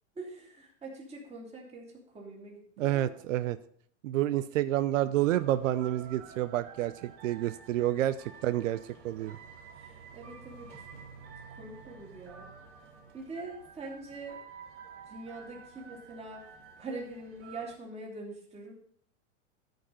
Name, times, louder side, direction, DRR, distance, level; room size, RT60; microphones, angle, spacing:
voice 1, 0.2-3.2 9.7-10.7 11.5-12.5 13.1-14.4 15.1-16.4 16.8-18.7, right 2 dB, 15° right, -1 dB, 2.6 m, -43 dB
voice 2, 2.8-3.6 4.0-8.8 9.0-9.4, right 13 dB, 80° right, 14 dB, 0.6 m, -29 dB
sound 1, 5.1-17.7, right 6 dB, 35° right, 2.2 m, -50 dB
13.0 x 5.3 x 5.4 m, 0.62 s
supercardioid pair, 140°, 38 cm